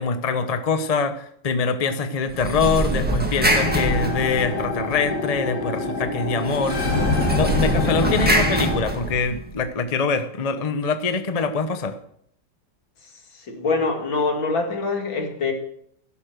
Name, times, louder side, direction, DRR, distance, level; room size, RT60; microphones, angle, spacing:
voice 1, 0.0-6.8 7.4-12.0, left 4 dB, 30° left, 8 dB, 0.7 m, -24 dB
sound 1, 2.3-4.8 6.4-9.6, right 1 dB, 5° right, 1.5 m, -24 dB
sound 2, 3.5-8.8, left 2 dB, 55° left, 2.5 m, -25 dB
voice 2, 13.4-15.5, left 4 dB, 80° left, 3 dB, 3.0 m, -24 dB
16.5 x 7.2 x 6.3 m, 0.68 s
omnidirectional pair, 2.1 m